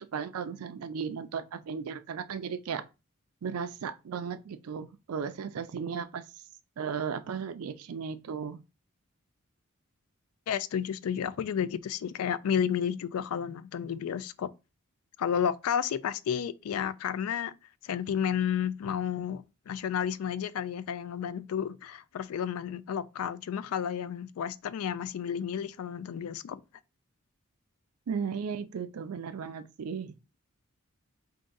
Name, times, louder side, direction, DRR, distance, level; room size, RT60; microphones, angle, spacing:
voice 1, 0.0-2.8 3.4-6.3 6.8-8.6 28.1-30.1, right 6 dB, 90° right, 0.4 m, -35 dB
voice 2, 10.5-14.5 15.2-17.5 17.8-26.6, left 8 dB, 85° left, 0.3 m, -31 dB
3.7 x 2.5 x 3.8 m
head